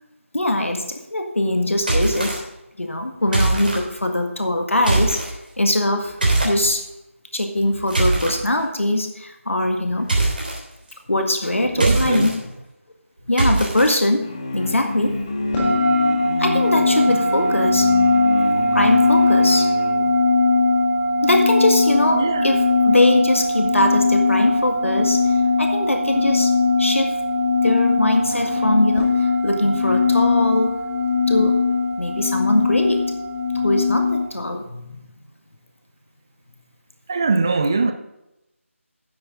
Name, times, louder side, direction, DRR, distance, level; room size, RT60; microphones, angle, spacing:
voice 1, 0.3-2.4 2.8-5.2 5.6-6.1 6.4-6.8 7.3-10.1 11.1-12.5 13.3-14.3 14.5-15.1 16.4-17.9 18.7-19.7 20.0-20.2 21.2-26.5 26.8-27.2 27.6-30.8 31.3-31.6 32.0-33.0 33.6-35.0, left 1 dB, 65° left, 1.8 m, -22 dB
sound 1, 1.8-2.4 3.3-3.8 4.8-5.3 6.2-6.5 7.6-8.3 10.1-10.6 11.7-12.3 13.4-14.0, right 2 dB, 40° right, 3.3 m, -21 dB
voice 2, 11.6-12.3 16.9-17.2 22.1-22.4 37.1-37.9, right 3 dB, 20° right, 0.4 m, -21 dB
sound 2, 14.2-20.1, left 2 dB, 25° left, 1.4 m, -29 dB
sound 3, 15.5-34.2, left 3 dB, 10° left, 1.7 m, -19 dB
13.0 x 9.8 x 3.8 m
figure-of-eight pair, 165°, 7 cm